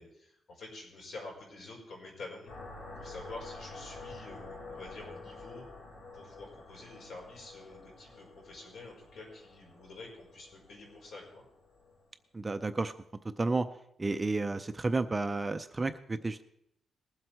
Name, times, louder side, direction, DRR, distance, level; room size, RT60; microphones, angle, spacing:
voice 1, 0.0-2.5 3.0-5.7 6.1-11.5, left 2 dB, 70° left, -1 dB, 4.9 m, -48 dB
sound 1, 2.5-12.0, left 3 dB, 85° left, 4.6 m, -49 dB
voice 2, 12.3-12.9 13.4-13.7 14.0-16.4, right 3 dB, 20° right, 10 dB, 0.5 m, -31 dB
20.0 x 7.8 x 4.5 m, 0.75 s
wide cardioid pair, 165°, 0 cm